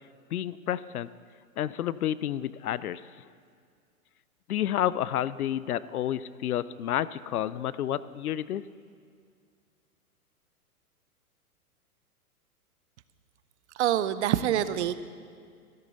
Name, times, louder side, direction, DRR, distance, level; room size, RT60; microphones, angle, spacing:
voice 1, 0.3-1.1 1.6-3.0 4.5-8.6, left 11 dB, 75° left, 17 dB, 0.6 m, -30 dB
voice 2, 13.8-14.9, right 11 dB, 50° right, 13 dB, 0.6 m, -26 dB
13.5 x 13.0 x 4.0 m, 2.2 s
hypercardioid pair, 115°, 45 cm